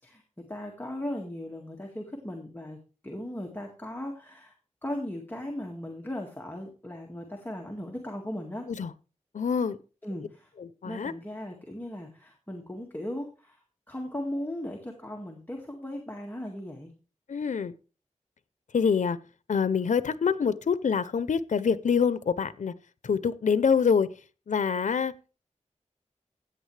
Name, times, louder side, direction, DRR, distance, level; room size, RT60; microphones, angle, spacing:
voice 1, 0.0-2.8 3.0-4.5 4.8-8.7 10.0-10.5 10.8-16.9, left 1 dB, 15° left, 1.9 m, -37 dB
voice 2, 9.3-9.8 10.6-11.1 17.3-17.7 18.7-19.2 19.5-22.7 23.0-24.1 24.5-25.1, left 6 dB, 85° left, 0.6 m, -25 dB
15.5 x 8.8 x 3.2 m
wide cardioid pair, 85°, 13 cm